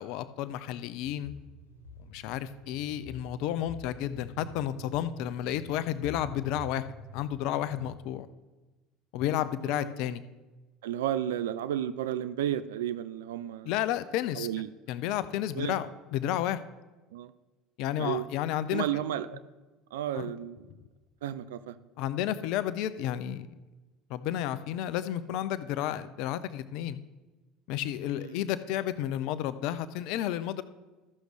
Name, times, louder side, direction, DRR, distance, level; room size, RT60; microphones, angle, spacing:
voice 1, 0.0-1.3 2.1-6.8 7.1-8.3 9.1-10.2 13.6-14.5 14.9-16.6 17.8-18.8 20.2-20.3 22.0-23.5 24.1-27.0 27.7-30.6, left 11 dB, 60° left, 14 dB, 0.5 m, -31 dB
sound 1, 1.0-7.9, equal, 90° left, 1.7 m, -47 dB
voice 2, 10.8-13.7 14.3-14.7 15.5-15.8 17.1-17.3 18.0-18.3 18.7-19.4 19.9-20.7 21.2-21.8 28.2-28.4, right 11 dB, 70° right, 13 dB, 0.3 m, -32 dB
14.0 x 6.4 x 3.3 m, 1.2 s
figure-of-eight pair, 65°, 0 cm